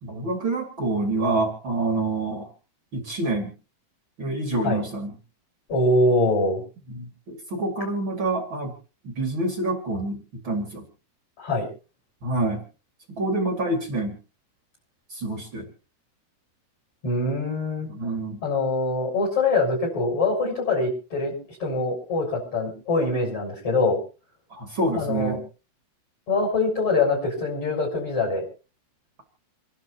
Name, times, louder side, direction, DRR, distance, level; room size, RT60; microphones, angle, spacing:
voice 1, 0.0-2.5 2.9-3.5 4.2-5.2 6.9-8.7 9.0-10.8 12.2-12.6 13.1-14.1 15.1-15.7 17.9-18.4 24.5-25.4, right 2 dB, 45° right, 3 dB, 1.6 m, -27 dB
voice 2, 5.7-6.6 11.4-11.7 17.0-17.9 18.4-21.3 21.6-24.0 24.9-25.4 26.3-28.4, left 2 dB, 25° left, -3 dB, 7.5 m, -23 dB
29.0 x 12.0 x 2.9 m, 0.34 s
omnidirectional pair, 5.8 m